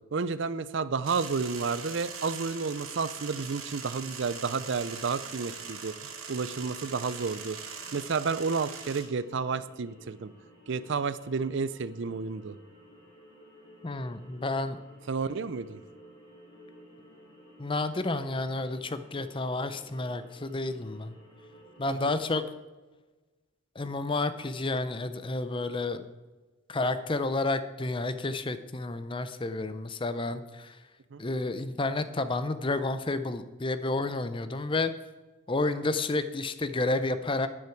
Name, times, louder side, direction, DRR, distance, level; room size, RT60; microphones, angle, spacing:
voice 1, 0.1-5.9 6.3-7.6 7.9-10.3 10.7-12.6 15.1-15.8 21.9-22.2 31.1-31.2, right 5 dB, 60° right, 15 dB, 0.5 m, -31 dB
sound 1, 1.0-9.0, right 6 dB, 85° right, 2.2 m, -41 dB
sound 2, 4.0-22.1, equal, 50° left, 4.6 m, -55 dB
voice 2, 13.8-14.8 17.6-21.1 21.8-22.4 23.8-26.0 26.7-30.8 31.2-34.9 35.5-37.5, left 2 dB, 25° left, 11 dB, 0.6 m, -30 dB
12.0 x 9.8 x 4.6 m, 1.2 s
head